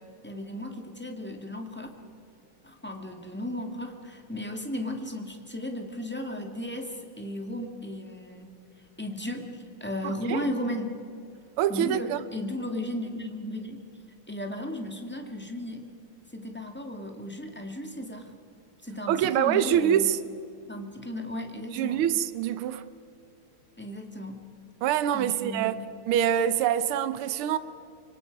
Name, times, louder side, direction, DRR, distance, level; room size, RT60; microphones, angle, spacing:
voice 1, 0.0-1.9 2.6-8.6 9.0-11.0 11.7-13.8 14.3-15.8 16.3-18.3 18.8-20.1 20.7-22.0 23.8-24.4 25.1-25.9, left 1 dB, 5° left, 1.7 m, -35 dB
voice 2, 10.0-10.4 11.6-12.2 19.1-20.2 21.7-22.9 24.8-27.6, right 10 dB, 80° right, 1.6 m, -25 dB
25.0 x 24.0 x 5.3 m
omnidirectional pair, 2.4 m